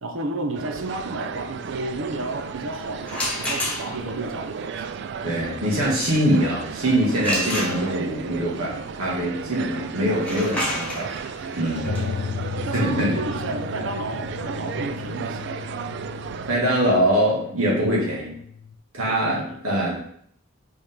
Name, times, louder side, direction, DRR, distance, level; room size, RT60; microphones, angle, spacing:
voice 1, 0.0-4.8 11.9-12.3 12.6-15.5 19.1-19.6, right 2 dB, 70° right, 5 dB, 0.8 m, -32 dB
sound 1, 0.5-16.6, right 6 dB, 55° right, 0.3 m, -34 dB
sound 2, 3.0-4.2 7.2-8.2 10.1-15.8, equal, 5° left, 1.1 m, -31 dB
voice 2, 5.2-11.1 11.6-11.9 12.7-13.2 16.5-18.4 18.9-19.9, equal, 90° right, -5 dB, 2.1 m, -23 dB
sound 3, 11.9-18.8, left 6 dB, 65° left, 0.4 m, -35 dB
5.3 x 4.8 x 3.7 m, 0.67 s
head